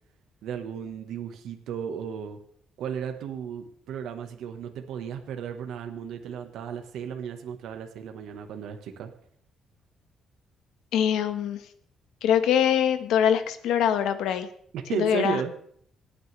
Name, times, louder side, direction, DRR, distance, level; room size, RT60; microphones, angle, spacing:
voice 1, 0.4-2.4 2.8-9.1 14.7-15.5, right 8 dB, 80° right, 5 dB, 1.3 m, -34 dB
voice 2, 10.9-11.6 12.2-14.5 14.9-15.4, left 9 dB, 85° left, 10 dB, 1.3 m, -23 dB
26.0 x 8.9 x 3.3 m, 0.64 s
cardioid pair, 90°, 0 cm